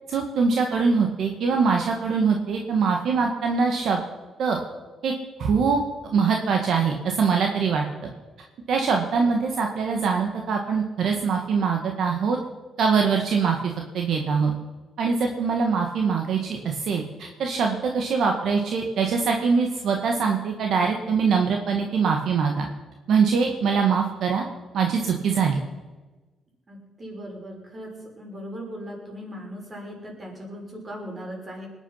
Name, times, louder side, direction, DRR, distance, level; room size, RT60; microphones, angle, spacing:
voice 1, 0.1-4.0 4.4-4.6 5.0-5.1 5.4-5.8 6.1-8.1 8.7-12.4 12.8-14.5 15.0-22.7 23.1-24.5 24.7-25.6, right 5 dB, 70° right, 2 dB, 1.8 m, -23 dB
voice 2, 26.7-31.7, equal, 35° right, -1 dB, 6.1 m, -38 dB
20.5 x 10.0 x 5.8 m, 1.2 s
cardioid pair, 90°, 0 cm